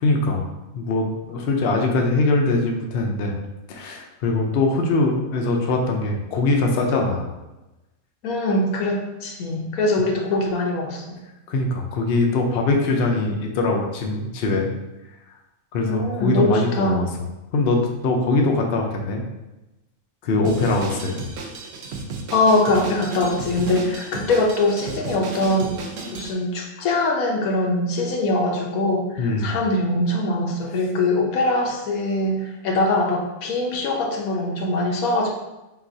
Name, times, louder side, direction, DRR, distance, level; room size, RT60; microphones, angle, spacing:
voice 1, 0.0-0.5 0.7-3.3 3.7-7.3 11.5-14.7 15.7-17.1 17.5-19.2 20.2-21.2 29.2-29.6, left 2 dB, 60° left, 1 dB, 0.7 m, -22 dB
voice 2, 8.2-11.2 15.8-17.0 22.3-25.8 26.1-35.3, left 2 dB, 80° left, 0 dB, 1.2 m, -22 dB
Drum kit, 20.4-26.3, right 3 dB, 65° right, 0.7 m, -33 dB
5.7 x 2.4 x 2.7 m, 1.0 s
omnidirectional pair, 1.5 m